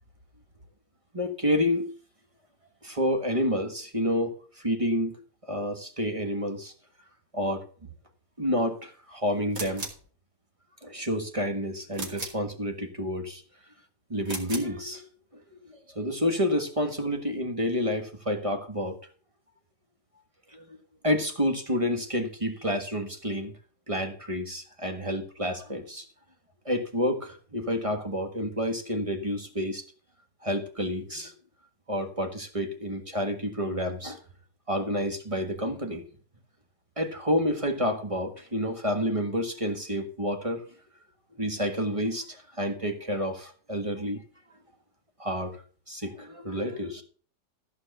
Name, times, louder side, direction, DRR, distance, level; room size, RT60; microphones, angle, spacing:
voice 1, 1.1-1.9 2.8-5.2 5.4-6.7 7.3-7.7 8.4-9.9 10.8-13.4 14.1-15.1 15.7-19.0 20.5-20.6 21.0-23.5 23.9-26.1 26.6-29.8 30.4-31.3 31.9-34.2 34.7-36.0 37.0-40.6 41.4-44.2 45.2-45.6 45.9-47.0, equal, 20° right, 5 dB, 1.5 m, -29 dB
sound 1, 9.5-10.1 11.9-12.5 14.2-14.8, right 2 dB, 55° right, 2.7 m, -37 dB
14.5 x 5.2 x 6.7 m, 0.42 s
omnidirectional pair, 1.7 m